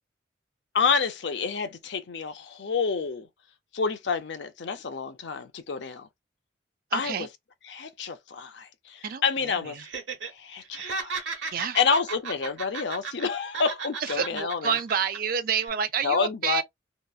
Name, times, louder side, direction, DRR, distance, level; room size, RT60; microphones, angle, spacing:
voice 1, 0.7-3.3 3.7-6.1 6.9-7.3 7.7-9.8 10.3-11.2 11.5-14.7 16.0-16.6, left 5 dB, 70° left, 0.6 m, -28 dB
voice 2, 6.9-7.3 9.0-9.8 11.5-11.8 14.0-16.6, right 7 dB, 50° right, 0.4 m, -29 dB
Laughter, 9.8-10.3 10.6-13.3 13.5-15.2 15.5-15.7, right 4 dB, 80° right, 1.0 m, -35 dB
2.9 x 2.1 x 2.3 m
head